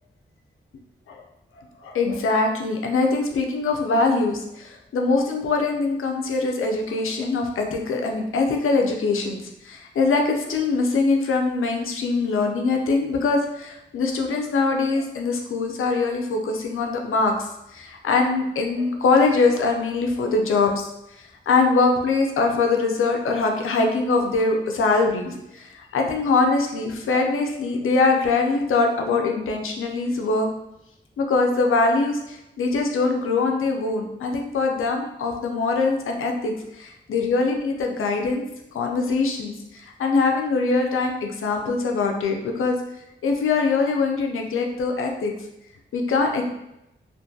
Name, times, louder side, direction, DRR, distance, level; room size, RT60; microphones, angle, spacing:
voice 1, 1.8-20.7 21.5-30.5 31.2-38.4 38.7-42.8 43.2-45.3 45.9-46.4, left 3 dB, 90° left, 2 dB, 0.4 m, -23 dB
2.5 x 2.2 x 2.6 m, 0.86 s
cardioid pair, 65°, 21 cm